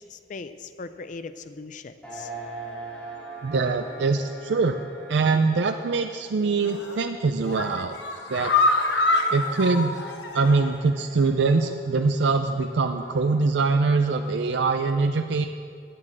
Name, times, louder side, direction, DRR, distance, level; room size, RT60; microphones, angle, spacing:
voice 1, 0.0-2.3, left 4 dB, 45° left, 11 dB, 0.4 m, -39 dB
sound 1, 2.0-13.4, right 3 dB, 10° left, 2.8 m, -44 dB
voice 2, 3.4-4.8 5.1-8.0 8.3-8.5 9.3-9.9 10.3-15.5, right 4 dB, 75° right, 7 dB, 0.5 m, -23 dB
sound 2, 6.6-7.0 7.4-10.8 11.1-11.2 11.6-11.7, left 2 dB, 75° left, 1.1 m, -25 dB
9.8 x 9.0 x 7.5 m, 2.3 s
head